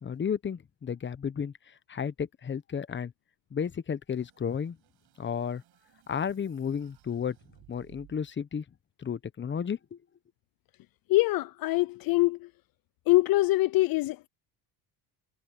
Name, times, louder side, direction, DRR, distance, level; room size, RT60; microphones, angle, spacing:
voice 1, 0.0-1.5 1.9-3.1 3.5-4.8 5.2-5.6 6.1-7.4 7.7-8.6 9.0-10.0, left 7 dB, 30° left, 1.0 m, -32 dB
sound 1, 4.1-8.4, right 16 dB, 75° right, 7.8 m, -61 dB
voice 2, 11.1-12.5 13.1-14.3, left 18 dB, 65° left, 0.6 m, -24 dB
cardioid pair, 100°, 39 cm